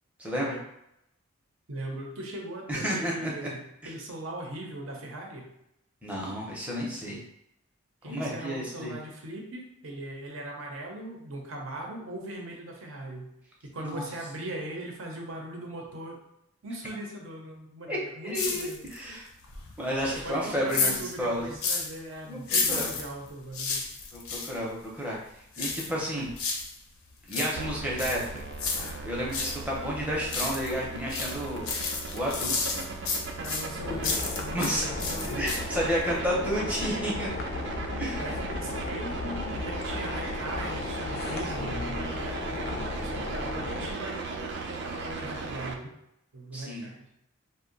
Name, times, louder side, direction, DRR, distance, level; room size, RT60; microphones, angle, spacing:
voice 1, 0.2-0.6 2.7-3.5 3.8-3.9 6.0-7.2 8.0-8.9 13.8-14.0 17.9-18.0 18.2-19.3 19.8-21.6 22.3-22.9 24.1-25.2 25.6-26.3 27.3-28.4 29.0-31.7 32.1-32.9 34.5-34.9 35.2-37.3 37.9-38.2 41.6-42.1 46.5-46.9, equal, 5° right, -4 dB, 0.6 m, -31 dB
voice 2, 1.7-5.5 8.0-13.3 13.6-16.2 16.6-18.8 20.1-23.9 33.4-35.4 36.2-36.5 38.2-45.9 46.3-47.1, right 1 dB, 70° right, 0 dB, 0.7 m, -39 dB
sound 1, 18.3-19.1 19.4-22.0 22.4-24.6 25.5-26.8 27.1-29.6 30.0-30.8 31.1-34.7 35.0-35.8 36.1-36.2, left 4 dB, 85° left, 0.6 m, -31 dB
sound 2, 27.6-45.7, right 3 dB, 55° right, 0.3 m, -38 dB
sound 3, 33.8-43.9, left 3 dB, 50° left, 0.4 m, -36 dB
2.6 x 2.1 x 3.8 m, 0.82 s
head